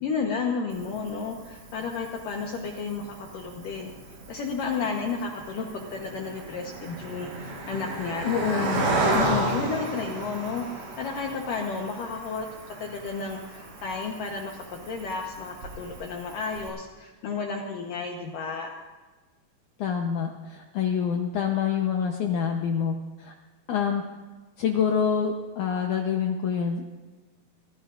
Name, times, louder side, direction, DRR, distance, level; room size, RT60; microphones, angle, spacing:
voice 1, 0.0-3.9 4.3-8.7 9.2-18.7, left 4 dB, 65° left, 1 dB, 2.3 m, -32 dB
Cricket, 0.7-16.7, right 2 dB, 75° right, 6.4 m, -34 dB
voice 2, 8.2-9.5 19.8-23.3 23.7-24.0 24.6-26.8, left 7 dB, 85° left, 2 dB, 1.7 m, -27 dB
26.5 x 16.5 x 2.5 m, 1.3 s
omnidirectional pair, 5.0 m